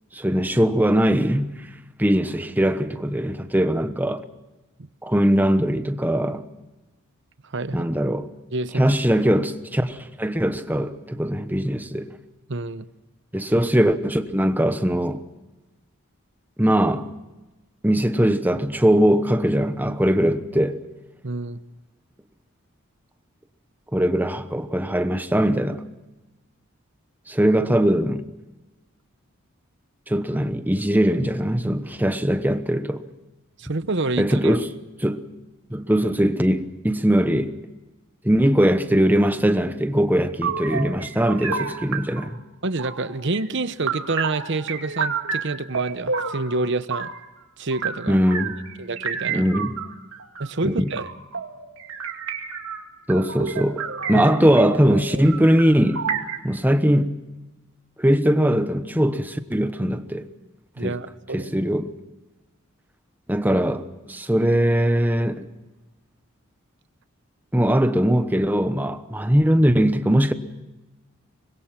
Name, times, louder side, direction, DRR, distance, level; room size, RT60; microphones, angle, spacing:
voice 1, 0.1-1.7 2.0-4.2 5.0-6.5 7.7-8.3 8.7-12.1 13.3-15.2 16.6-17.1 17.8-20.8 23.9-25.8 27.3-28.3 30.1-33.0 34.2-34.7 35.0-35.2 35.7-37.5 38.2-42.4 48.1-48.6 49.3-49.7 50.6-50.9 53.1-53.8 54.1-56.1 56.4-57.2 58.0-60.2 60.8-61.0 61.3-61.9 63.3-65.5 67.5-70.3, equal, 10° right, 1.0 m, -21 dB
voice 2, 7.4-7.9 8.5-8.9 12.5-12.9 21.2-21.6 33.6-34.6 42.6-47.1 47.6-48.2 48.8-49.5 50.4-51.1 54.1-54.3 60.8-61.5, right 3 dB, 55° right, 1.0 m, -28 dB
sound 1, 40.4-42.3 42.8-43.5 43.9-47.2 47.7-56.4, right 5 dB, 75° right, 2.4 m, -30 dB
25.0 x 21.5 x 5.9 m
head